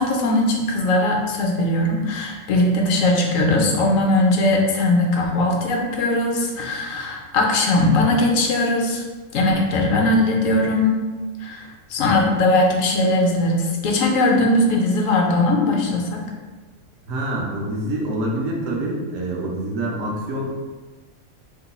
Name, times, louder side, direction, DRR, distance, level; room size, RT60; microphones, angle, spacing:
voice 1, 0.0-9.0 9.3-10.9 11.4-11.6 11.9-16.2, left 2 dB, 75° left, 1 dB, 1.0 m, -19 dB
voice 2, 17.1-20.6, right 1 dB, 75° right, -2 dB, 1.0 m, -26 dB
3.0 x 2.2 x 4.0 m, 1.3 s
omnidirectional pair, 1.4 m